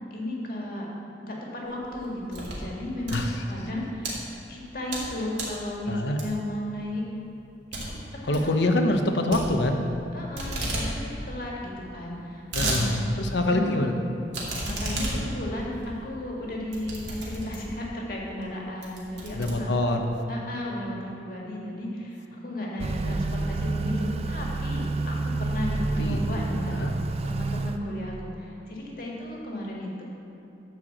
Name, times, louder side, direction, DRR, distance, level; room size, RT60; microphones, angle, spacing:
voice 1, 0.1-0.9 1.2-4.2 4.5-7.1 7.7-8.6 10.1-12.9 13.4-13.7 14.6-19.7 20.3-26.8 27.2-30.0, left 1 dB, 50° left, -3 dB, 1.9 m, -34 dB
sound 1, 1.7-2.7 3.0-4.1 4.6-5.1 5.3-5.6 6.2-6.6 6.9-7.0 7.3-7.4 7.7-7.9 8.2-8.5 9.3-10.0 10.3-10.9 11.2-11.3 11.5-11.6 12.1-12.8 13.2-13.3 14.3-17.8 18.4-18.5 18.8-20.1, right 2 dB, 75° right, 2.4 m, -33 dB
voice 2, 3.1-3.4 5.9-6.2 8.3-9.8 12.5-13.9 19.3-20.0 25.8-26.2 26.6-26.9, left 1 dB, 70° left, 4 dB, 0.9 m, -25 dB
Motor vehicle (road) / Accelerating revving vroom, 22.8-27.8, right 2 dB, 35° right, 0.4 m, -29 dB
11.5 x 4.7 x 7.4 m, 2.8 s
head